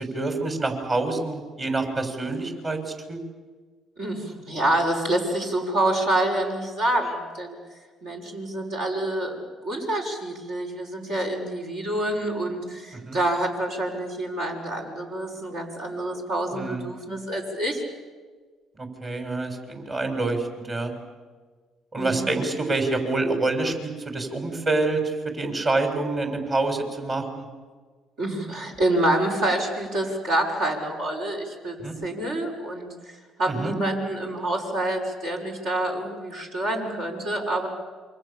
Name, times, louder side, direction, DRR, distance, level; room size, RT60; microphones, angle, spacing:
voice 1, 0.0-3.2 13.1-13.2 16.5-16.8 18.8-20.9 21.9-27.5 31.8-32.0 33.5-33.7, right 2 dB, 40° right, 4 dB, 6.9 m, -27 dB
voice 2, 4.0-7.6 8.0-9.4 9.6-17.8 22.0-22.3 28.2-37.7, right 1 dB, 75° right, -1 dB, 6.2 m, -27 dB
28.0 x 24.5 x 7.4 m, 1.5 s
hypercardioid pair, 55°, 0 cm